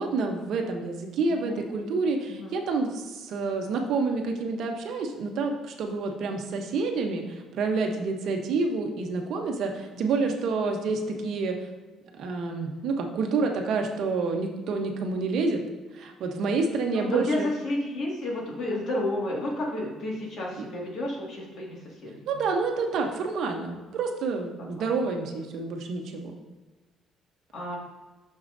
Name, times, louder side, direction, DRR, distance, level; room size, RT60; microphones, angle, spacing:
voice 1, 0.0-11.6 12.1-15.6 15.9-17.5 20.6-20.7 22.3-26.3, right 4 dB, 55° right, 3 dB, 0.9 m, -28 dB
voice 2, 1.3-1.6 2.3-2.5 9.9-10.2 16.9-22.4 24.7-24.9 27.5-27.8, left 1 dB, 50° left, -3 dB, 1.9 m, -31 dB
9.2 x 6.3 x 2.6 m, 1.2 s
cardioid pair, 165°, 0 cm